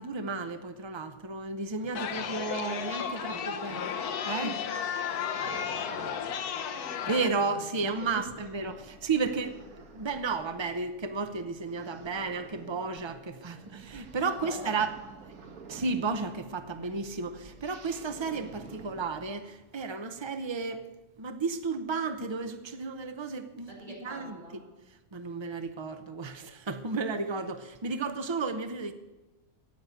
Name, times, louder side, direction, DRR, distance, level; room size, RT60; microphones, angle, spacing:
voice 1, 0.0-4.0 4.2-4.7 7.1-9.6 9.9-14.9 15.2-15.3 15.7-20.9 21.2-24.4 25.1-28.9, right 4 dB, 45° right, 9 dB, 0.3 m, -33 dB
sound 1, 1.8-19.0, right 4 dB, 70° right, 1.7 m, -52 dB
Chatter, 1.9-7.3, left 8 dB, 80° left, 1.4 m, -33 dB
voice 2, 3.2-3.7 5.1-7.1 7.5-7.6 8.0-8.2 8.5-9.1 14.4-14.6 15.4-15.5 23.7-24.7, equal, 25° right, -4 dB, 6.2 m, -47 dB
sound 2, 7.9-13.1 13.4-19.7, right 2 dB, 50° left, 4.9 m, -58 dB
15.0 x 9.7 x 8.0 m, 1.1 s
omnidirectional pair, 1.6 m